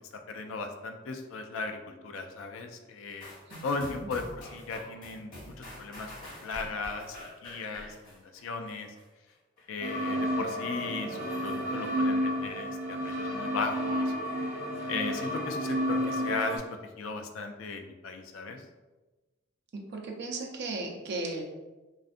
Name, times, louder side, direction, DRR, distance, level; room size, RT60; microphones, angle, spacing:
voice 1, 0.1-3.3 3.6-7.2 7.4-8.9 9.7-14.1 14.9-18.6, left 4 dB, 75° left, 5 dB, 0.3 m, -37 dB
sound 1, 3.2-9.0 9.6-9.7, left 1 dB, 45° left, 1.2 m, -46 dB
voice 2, 3.5-4.1 19.7-21.4, right 3 dB, 60° right, 1 dB, 0.5 m, -36 dB
sound 2, 9.8-16.6, equal, 10° right, 0.6 m, -31 dB
2.4 x 2.4 x 2.5 m, 1.2 s
head